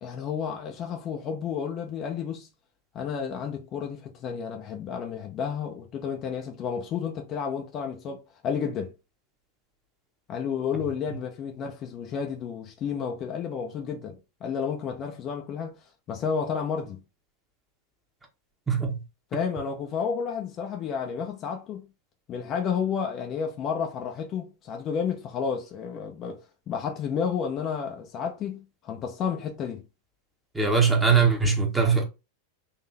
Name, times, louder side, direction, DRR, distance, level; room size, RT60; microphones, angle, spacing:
voice 1, 0.0-2.5 2.9-8.9 10.3-17.0 19.3-21.8 22.3-26.4 26.7-29.8, left 6 dB, 30° left, 0.8 m, -31 dB
voice 2, 30.5-32.0, right 5 dB, 10° right, 1.3 m, -21 dB
4.2 x 3.0 x 4.1 m
figure-of-eight pair, 90°, 0 cm